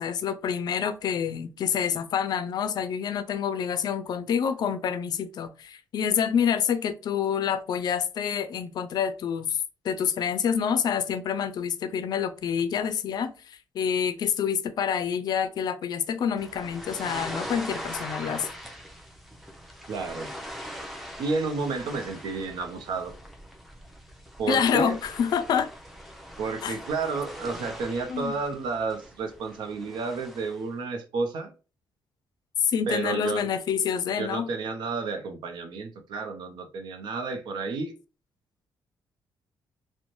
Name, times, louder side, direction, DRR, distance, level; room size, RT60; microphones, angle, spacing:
voice 1, 0.0-9.6 9.8-18.5 24.5-25.7 26.6-26.7 28.1-28.4 32.6-34.5, left 7 dB, 65° left, 0.3 m, -27 dB
sound 1, 16.4-30.6, equal, ahead, 0.6 m, -41 dB
voice 2, 19.9-20.3 21.2-23.1 24.4-25.0 26.4-31.5 32.9-33.5 34.2-37.9, right 4 dB, 80° right, 0.6 m, -31 dB
2.5 x 2.1 x 3.0 m
cardioid pair, 110°, 8 cm